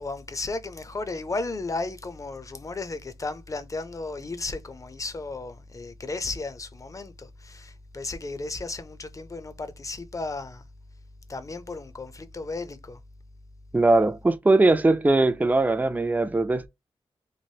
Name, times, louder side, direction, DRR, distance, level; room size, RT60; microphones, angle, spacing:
voice 1, 0.0-10.6 11.3-13.0, left 3 dB, 30° left, 0.6 m, -34 dB
voice 2, 13.7-16.7, right 2 dB, 15° right, 0.4 m, -20 dB
3.1 x 2.5 x 2.7 m
wide cardioid pair, 85°, 10 cm